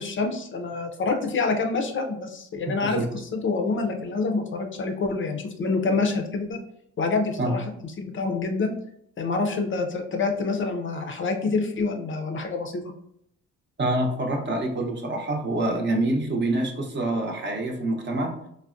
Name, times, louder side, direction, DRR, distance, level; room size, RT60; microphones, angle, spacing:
voice 1, 0.0-6.6 7.0-8.7 9.2-12.9, left 3 dB, 40° left, 4 dB, 0.5 m, -27 dB
voice 2, 13.8-18.4, right 1 dB, 40° right, 1 dB, 0.7 m, -26 dB
3.4 x 2.1 x 2.5 m, 0.73 s
cardioid pair, 90°, 30 cm